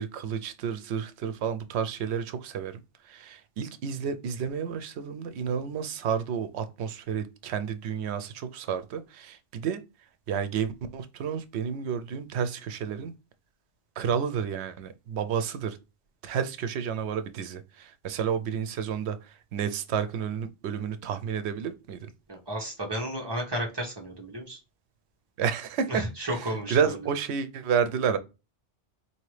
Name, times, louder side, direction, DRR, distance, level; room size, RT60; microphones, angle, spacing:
voice 1, 0.0-2.8 3.0-9.8 10.3-13.1 14.0-15.8 16.2-22.1 25.4-26.0 26.7-28.2, right 7 dB, 90° right, 0.9 m, -30 dB
voice 2, 22.3-24.6 25.9-27.0, right 1 dB, 25° right, 1.1 m, -33 dB
4.3 x 2.8 x 3.1 m
omnidirectional pair, 1.1 m